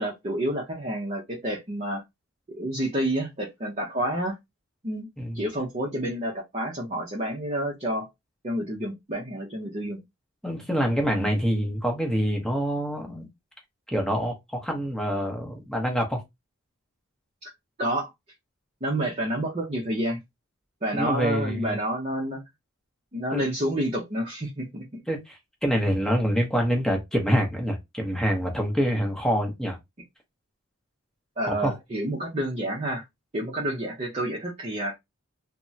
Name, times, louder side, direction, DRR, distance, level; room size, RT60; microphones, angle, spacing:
voice 1, 0.0-2.0 2.6-4.4 4.8-5.1 5.3-8.1 8.4-10.0 11.1-11.3 17.4-17.5 17.8-18.1 18.8-20.2 20.8-22.4 23.1-25.0 31.4-33.0 33.3-35.0, right 1 dB, 30° right, 0.6 m, -29 dB
voice 2, 10.4-13.3 13.9-16.2 21.0-21.8 23.3-23.4 25.1-29.8 31.4-31.7, equal, 5° left, 0.7 m, -26 dB
3.4 x 2.0 x 2.7 m
head